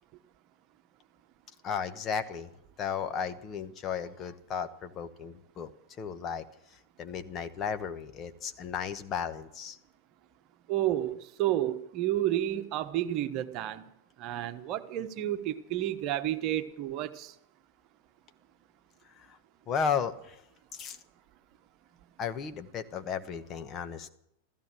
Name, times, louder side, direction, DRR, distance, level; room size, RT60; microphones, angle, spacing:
voice 1, 1.6-2.5 2.8-5.7 6.0-6.4 6.7-9.8 19.1-19.4 19.7-20.4 20.7-21.0 22.2-24.1, left 7 dB, 35° left, 9 dB, 1.2 m, -34 dB
voice 2, 10.7-13.8 14.2-17.3, right 13 dB, 45° right, 9 dB, 1.2 m, -31 dB
15.0 x 14.5 x 6.3 m, 0.77 s
figure-of-eight pair, 95°, 0 cm